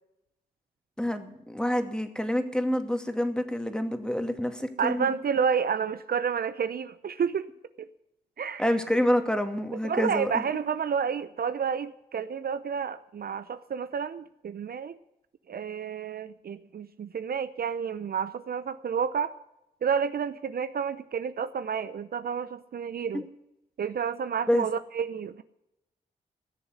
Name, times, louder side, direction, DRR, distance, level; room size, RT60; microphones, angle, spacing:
voice 1, 1.0-5.1 8.6-10.4 23.1-23.2 24.5-24.7, equal, 5° left, 7 dB, 2.3 m, -27 dB
voice 2, 4.8-7.5 8.4-8.7 9.8-15.0 15.5-19.3 19.8-23.2 23.8-25.4, right 7 dB, 55° right, 12 dB, 0.7 m, -30 dB
16.5 x 7.1 x 9.6 m, 0.86 s
hypercardioid pair, 40°, 19 cm